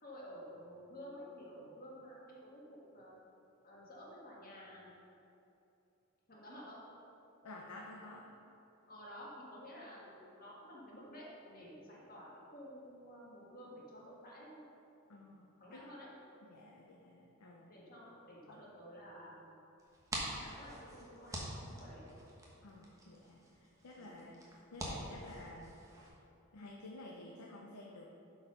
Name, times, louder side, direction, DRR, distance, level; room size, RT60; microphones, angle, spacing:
voice 1, 0.0-3.1 3.6-5.0 6.3-6.8 8.9-14.7 15.6-16.1 17.7-19.6 20.1-22.0 23.9-24.2, equal, 40° left, -4 dB, 1.7 m, -52 dB
voice 2, 7.4-8.3 15.1-15.8 16.4-17.7 22.6-25.7 26.5-28.1, left 2 dB, 85° left, -1 dB, 0.7 m, -52 dB
sound 1, 19.8-26.1, right 1 dB, 15° right, 1.1 m, -46 dB
8.0 x 4.8 x 5.4 m, 2.9 s
head